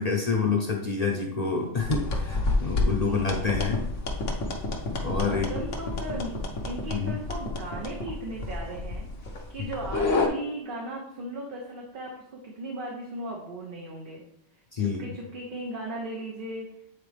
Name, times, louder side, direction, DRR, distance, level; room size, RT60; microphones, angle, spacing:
voice 1, 0.0-3.9 5.0-5.5 6.9-7.1 14.7-15.1, left 5 dB, 40° left, -1 dB, 0.8 m, -27 dB
sound 1, 1.8-10.3, left 2 dB, 85° left, 1.3 m, -29 dB
voice 2, 3.0-3.7 5.0-6.4 6.6-14.2 14.8-16.7, right 2 dB, 50° right, -1 dB, 1.0 m, -37 dB
8.6 x 4.0 x 3.4 m, 0.78 s
omnidirectional pair, 1.2 m